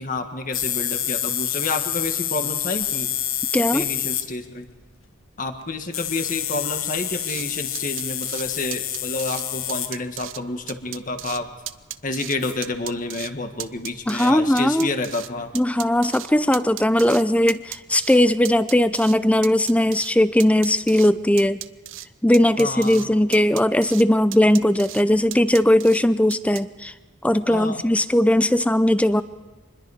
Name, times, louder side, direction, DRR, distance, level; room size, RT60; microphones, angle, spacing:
voice 1, 0.0-3.1 3.7-4.7 5.4-11.5 12.0-15.5 22.6-23.1 27.5-27.8, left 2 dB, 40° left, 6 dB, 1.7 m, -29 dB
sound 1, 0.5-4.2 4.7-4.8 5.9-9.9 11.1-11.3 12.4-12.8, left 11 dB, 75° left, 1.4 m, -27 dB
voice 2, 3.5-3.9 14.1-14.9 15.5-21.6 22.2-26.9 27.2-29.2, left 1 dB, 5° left, 14 dB, 0.6 m, -19 dB
sound 2, 7.2-7.5 7.8-8.5 8.7-9.4 9.7-10.4 10.7-11.4 11.7-12.4 12.6-13.3 13.6-15.3 15.6-17.2 17.5-18.2 18.5-19.2 19.4-20.1 20.4-21.1 21.4-22.1 22.3-23.1 23.3-24.0 24.3-25.0 25.3-26.0 26.3-26.6, right 14 dB, 65° right, 0.6 m, -35 dB
26.0 x 21.0 x 5.0 m, 1.3 s
head